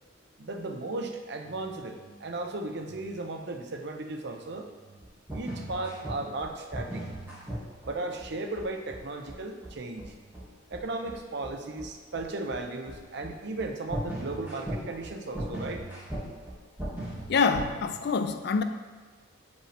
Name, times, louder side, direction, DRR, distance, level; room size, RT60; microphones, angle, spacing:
voice 1, 0.4-5.0 5.3-7.0 7.8-10.1 10.7-15.8, right 2 dB, 60° right, 4 dB, 0.6 m, -36 dB
sound 1, 5.0-17.7, right 1 dB, 10° right, 1.8 m, -38 dB
voice 2, 17.3-18.6, left 5 dB, 55° left, 9 dB, 0.4 m, -26 dB
7.6 x 5.2 x 3.3 m, 1.4 s
head